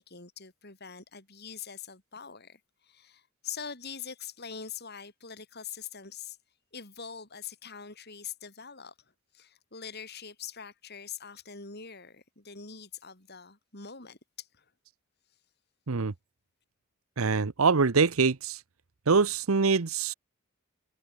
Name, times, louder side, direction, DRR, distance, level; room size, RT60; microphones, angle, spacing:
voice 1, 0.0-6.4 6.7-14.7, left 7 dB, 50° left, 5.1 m, -43 dB
voice 2, 17.2-18.6 19.1-20.1, right 4 dB, 85° right, 0.9 m, -24 dB
head